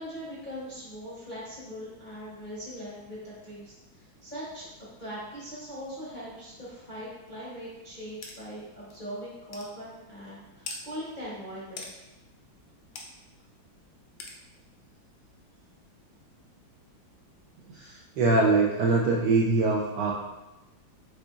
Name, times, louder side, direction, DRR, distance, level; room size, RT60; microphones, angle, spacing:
voice 1, 0.0-4.7 5.0-11.9, equal, 35° left, -8 dB, 0.8 m, -40 dB
sound 1, 8.2-8.4 8.9-9.0 9.5-9.7 10.7-10.8 11.8-11.9 13.0-13.1 14.2-14.4, left 4 dB, 70° left, 1.1 m, -39 dB
voice 2, 17.7-20.1, right 3 dB, 75° right, -2 dB, 1.0 m, -23 dB
4.9 x 3.8 x 2.4 m, 1.0 s
omnidirectional pair, 2.2 m